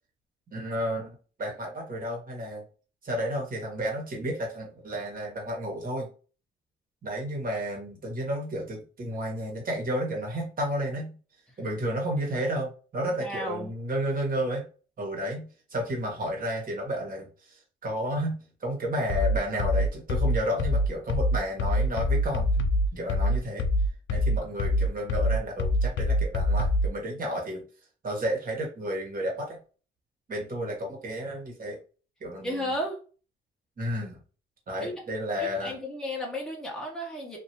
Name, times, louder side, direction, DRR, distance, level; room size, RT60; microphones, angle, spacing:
voice 1, 0.5-2.6 3.0-6.1 7.0-11.2 11.6-14.7 15.0-22.7 22.9-23.6 24.1-27.6 28.0-29.6 30.3-31.8 32.2-32.7 33.8-34.2 34.7-35.7, equal, 45° right, 0 dB, 1.6 m, -32 dB
voice 2, 13.2-13.7 32.4-33.0 34.8-34.9 35.4-37.4, equal, ahead, -2 dB, 1.1 m, -33 dB
sound 1, 19.1-26.9, left 1 dB, 70° left, 0.5 m, -24 dB
2.9 x 2.8 x 2.9 m, 0.36 s
cardioid pair, 90°, 20 cm